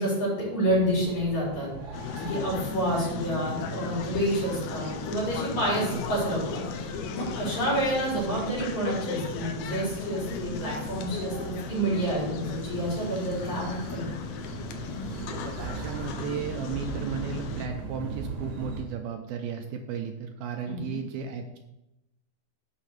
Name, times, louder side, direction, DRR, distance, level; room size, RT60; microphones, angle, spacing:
voice 1, 0.0-1.7 2.1-14.1 20.6-20.9, right 1 dB, 45° left, -6 dB, 5.1 m, -29 dB
sound 1, 0.6-18.8, right 5 dB, 55° right, 2.7 m, -40 dB
sound 2, 1.9-17.7, left 7 dB, 80° left, 2.5 m, -37 dB
voice 2, 15.3-21.6, right 6 dB, 85° right, 4 dB, 2.2 m, -35 dB
7.2 x 5.6 x 6.4 m, 0.92 s
omnidirectional pair, 4.9 m